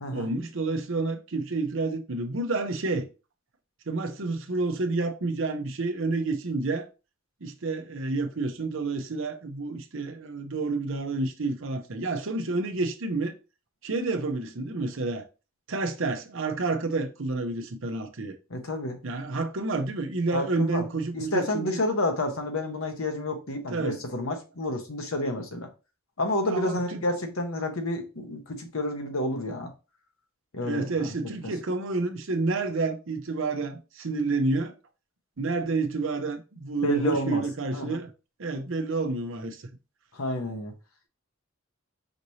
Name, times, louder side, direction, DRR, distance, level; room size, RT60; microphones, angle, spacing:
voice 1, 0.1-3.1 3.9-6.9 7.4-13.4 13.8-15.2 15.7-18.4 19.0-21.8 23.7-24.0 26.5-27.0 30.6-34.7 35.4-38.1 38.4-39.7, right 3 dB, 65° right, 0.7 m, -29 dB
voice 2, 18.5-19.0 20.3-20.8 21.1-25.7 26.2-29.7 30.5-30.9 36.8-37.4 37.7-38.0 40.1-40.7, left 1 dB, 85° left, 1.1 m, -29 dB
5.1 x 3.1 x 2.7 m
head